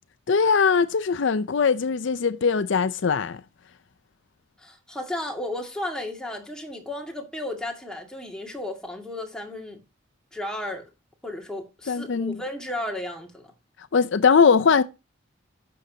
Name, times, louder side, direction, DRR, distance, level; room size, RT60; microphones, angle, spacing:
voice 1, 0.3-3.4 11.9-12.4 13.9-14.8, left 5 dB, 65° left, 0.5 m, -21 dB
voice 2, 4.6-9.8 10.3-10.8 11.2-13.5, left 1 dB, 5° left, 2.0 m, -34 dB
11.0 x 6.8 x 2.7 m
head